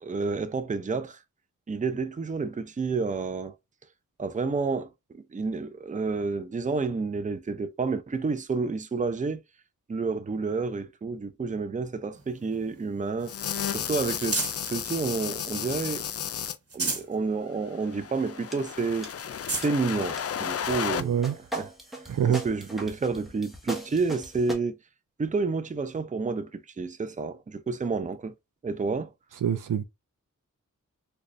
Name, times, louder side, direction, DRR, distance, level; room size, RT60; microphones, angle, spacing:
voice 1, 0.0-1.2 1.7-3.5 4.2-9.4 9.9-13.3 13.7-14.4 14.7-16.0 16.7-19.1 19.5-21.2 21.5-21.7 22.3-24.8 25.2-28.3 28.6-29.1, right 4 dB, 25° right, 0.5 m, -30 dB
sound 1, 12.1-14.8 15.3-16.1 16.5-17.2 17.6-17.7 18.1-18.2 18.8-18.9 19.3-19.7 20.6-20.7 22.4-22.5, right 3 dB, 50° right, 1.2 m, -35 dB
sound 2, 13.2-16.6 17.7-21.0, left 8 dB, 50° left, 0.4 m, -33 dB
sound 3, 18.5-18.6 19.0-19.3 19.6-19.7 20.2-20.3 20.7-24.5, right 2 dB, ahead, 1.2 m, -38 dB
voice 2, 21.0-21.3 22.1-22.4 29.4-29.8, right 9 dB, 85° right, 0.6 m, -25 dB
3.9 x 2.3 x 3.1 m
cardioid pair, 50°, 31 cm